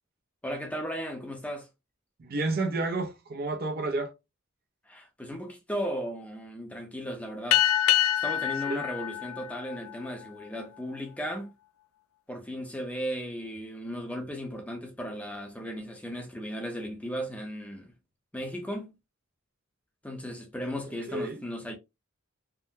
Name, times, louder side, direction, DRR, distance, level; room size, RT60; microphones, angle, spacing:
voice 1, 0.4-1.7 4.9-7.6 8.2-11.5 12.3-17.9 18.3-18.9 20.0-21.7, equal, 5° left, 0.6 m, -36 dB
voice 2, 2.2-4.1 8.7-8.8 21.1-21.4, right 2 dB, 45° right, 0.5 m, -30 dB
sound 1, 7.5-10.5, left 12 dB, 85° left, 0.3 m, -26 dB
3.6 x 2.1 x 2.6 m
head